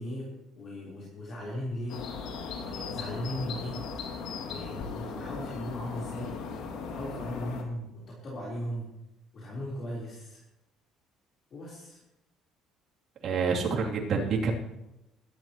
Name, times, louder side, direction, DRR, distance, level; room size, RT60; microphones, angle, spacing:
voice 1, 0.0-2.2 2.5-3.8 4.4-6.4 6.9-8.9 9.3-10.4 11.5-12.0, left 1 dB, 40° left, -5 dB, 3.9 m, -37 dB
sound 1, 1.9-7.6, left 5 dB, 75° left, 2.4 m, -38 dB
voice 2, 13.2-14.5, right 5 dB, 45° right, -3 dB, 2.9 m, -27 dB
22.0 x 12.0 x 3.0 m, 0.93 s
cardioid pair, 155°, 0 cm